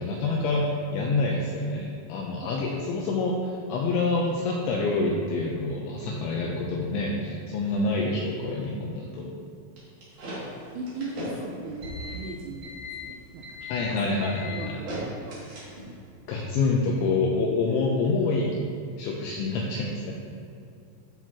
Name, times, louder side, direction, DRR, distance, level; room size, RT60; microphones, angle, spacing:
voice 1, 0.0-9.3 13.7-14.8 16.3-18.5 19.0-20.1, left 3 dB, 80° left, -2 dB, 2.8 m, -27 dB
sound 1, 9.8-16.0, left 1 dB, 40° right, 2.9 m, -38 dB
voice 2, 10.2-13.6 13.9-15.4 16.3-16.6, right 2 dB, 80° right, 0 dB, 3.0 m, -39 dB
13.0 x 8.1 x 3.0 m, 2.6 s
omnidirectional pair, 5.9 m